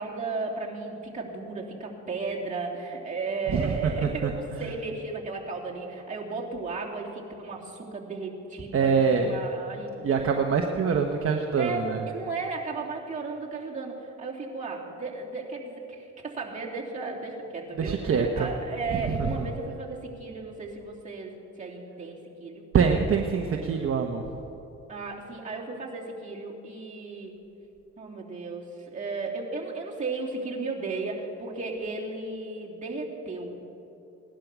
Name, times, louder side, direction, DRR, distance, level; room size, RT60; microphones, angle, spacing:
voice 1, 0.0-10.2 11.6-22.6 24.9-27.3 28.0-33.6, right 3 dB, 25° right, -4 dB, 3.0 m, -35 dB
voice 2, 3.5-4.3 8.7-9.3 10.0-12.0 17.8-18.5 18.9-19.4 22.7-24.2, right 5 dB, 45° right, 3 dB, 1.1 m, -25 dB
17.5 x 11.5 x 6.1 m, 2.9 s
cardioid pair, 90°, 30 cm